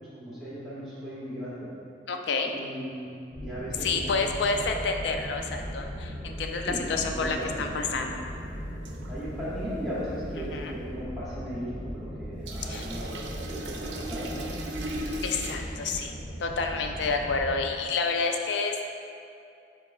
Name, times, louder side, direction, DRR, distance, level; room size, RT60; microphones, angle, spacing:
voice 1, 0.0-1.7 2.5-3.1 3.4-4.1 6.6-7.8 9.1-14.5, equal, ahead, -9 dB, 0.7 m, -37 dB
voice 2, 2.1-2.6 3.8-8.2 10.5-10.7 12.7-12.8 15.2-18.9, left 4 dB, 75° left, 4 dB, 0.4 m, -29 dB
sound 1, 3.3-17.6, equal, 40° left, 0.9 m, -38 dB
sound 2, 8.8-9.1 12.5-15.5, right 1 dB, 75° right, 0.4 m, -37 dB
5.5 x 4.0 x 2.3 m, 2.5 s
head